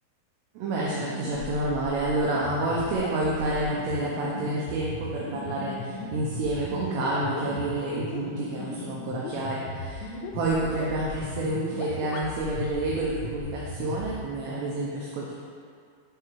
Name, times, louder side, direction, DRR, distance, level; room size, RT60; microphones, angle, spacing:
voice 1, 0.6-15.3, right 2 dB, 80° right, -5 dB, 2.6 m, -29 dB
sound 1, 0.8-14.2, left 4 dB, 80° left, 2.5 m, -37 dB
10.0 x 3.9 x 3.0 m, 2.3 s
omnidirectional pair, 5.3 m